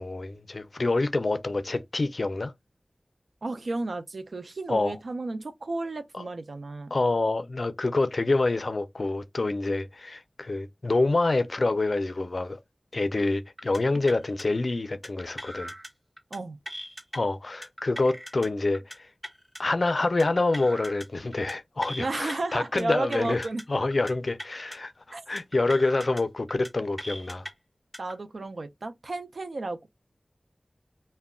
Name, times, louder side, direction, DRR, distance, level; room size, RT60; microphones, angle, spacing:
voice 1, 0.0-2.5 4.7-5.0 6.1-6.3 6.9-12.6 12.9-15.7 17.1-19.1 19.6-27.5, left 2 dB, 65° left, 0.4 m, -27 dB
voice 2, 3.4-6.9 16.3-16.6 22.0-23.6 25.1-25.2 28.0-29.9, right 2 dB, 90° right, 0.4 m, -33 dB
sound 1, 13.6-13.8 14.1-14.4 15.0-15.9 16.2-16.4 16.7-17.2 17.6-18.5 18.7-19.0 19.2-19.6 20.2-21.1 21.3-21.5 21.8-22.3 22.8-23.6 23.9-24.1 24.4-24.8 25.4-26.2 26.5-26.7 27.0-27.5 27.9-28.1, equal, 10° right, 0.8 m, -40 dB
2.2 x 2.1 x 3.5 m
wide cardioid pair, 60°, 0 cm